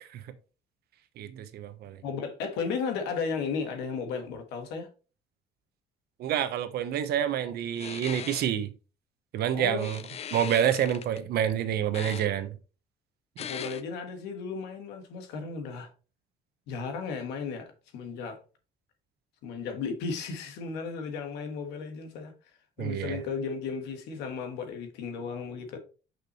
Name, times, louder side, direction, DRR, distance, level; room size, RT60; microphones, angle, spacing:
voice 1, 1.2-2.0 6.2-8.7 9.3-10.0 10.3-12.6 22.8-23.2, right 10 dB, 70° right, 1.0 m, -28 dB
voice 2, 2.0-4.9 9.5-9.9 13.5-15.9 16.7-18.4 19.4-22.3 22.8-25.8, left 5 dB, 90° left, 1.4 m, -34 dB
sound 1, 7.8-8.4 9.8-11.2 11.9-12.3 13.4-13.8, left 8 dB, 40° left, 0.4 m, -39 dB
6.0 x 5.5 x 3.1 m
cardioid pair, 110°, 17 cm